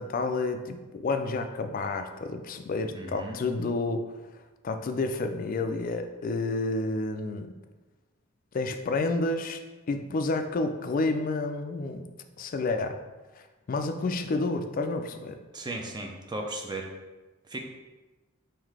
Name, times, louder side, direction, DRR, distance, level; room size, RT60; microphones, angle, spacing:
voice 1, 0.0-4.0 4.6-7.5 8.5-9.6 9.9-12.0 12.4-13.0 13.4-15.4, left 3 dB, 40° left, 7 dB, 0.3 m, -30 dB
voice 2, 2.9-3.4 15.5-16.9 17.5-17.6, right 2 dB, 20° right, 2 dB, 0.5 m, -36 dB
3.8 x 2.6 x 4.7 m, 1.2 s
head